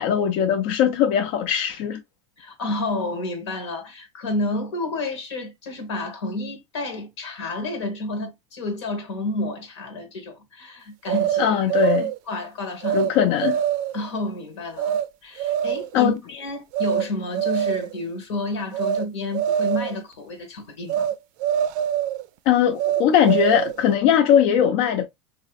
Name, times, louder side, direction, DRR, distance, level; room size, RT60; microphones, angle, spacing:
voice 1, 0.0-2.0 11.4-12.1 12.9-13.6 15.9-16.1 22.5-25.1, left 9 dB, 65° left, 0.4 m, -20 dB
voice 2, 2.4-11.6 11.8-11.9 12.3-13.1 13.9-21.1, left 2 dB, 90° left, 1.2 m, -30 dB
sound 1, 11.1-12.2 12.8-13.1 13.4-14.0 14.8-15.0 15.4-15.9 16.7-17.0 17.3-18.0 18.7-19.0 19.3-20.0 20.9-21.1 21.4-22.2 22.8-23.8, right 10 dB, 60° right, 0.4 m, -24 dB
3.2 x 2.6 x 2.3 m
supercardioid pair, 105°, 14 cm